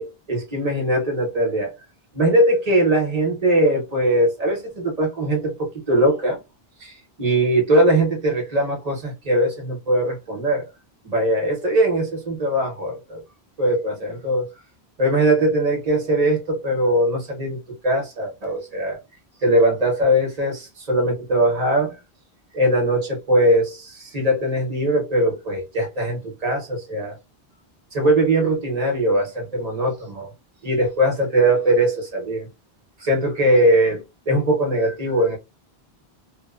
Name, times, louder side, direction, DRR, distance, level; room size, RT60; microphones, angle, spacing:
voice 1, 0.0-1.7 2.1-6.4 6.8-10.7 11.0-13.2 13.6-14.5 15.0-19.0 19.4-22.0 22.5-27.2 27.9-30.3 30.6-32.5 33.0-35.4, right 1 dB, 40° right, 1.0 m, -21 dB
2.7 x 2.1 x 2.3 m
omnidirectional pair, 1.0 m